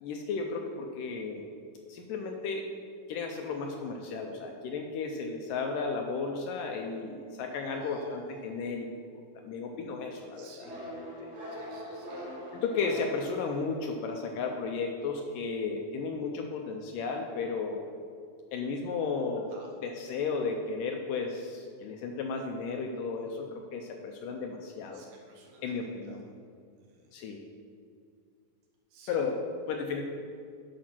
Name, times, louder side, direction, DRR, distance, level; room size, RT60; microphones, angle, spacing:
voice 1, 0.0-1.5 1.9-2.7 3.1-8.9 9.4-10.7 12.5-17.8 18.5-19.5 19.8-25.0 25.6-26.3 27.1-27.4 29.1-29.4 29.7-30.0, left 4 dB, 75° left, 3 dB, 2.1 m, -34 dB
voice 2, 7.6-8.6 10.3-10.9 11.5-12.3 19.5-19.7 24.9-26.2 26.8-27.0 28.9-29.2, right 2 dB, 75° right, 0 dB, 3.0 m, -52 dB
sound 1, 10.6-14.2, equal, 30° right, 2.5 m, -42 dB
10.5 x 5.3 x 6.1 m, 2.2 s
omnidirectional pair, 4.3 m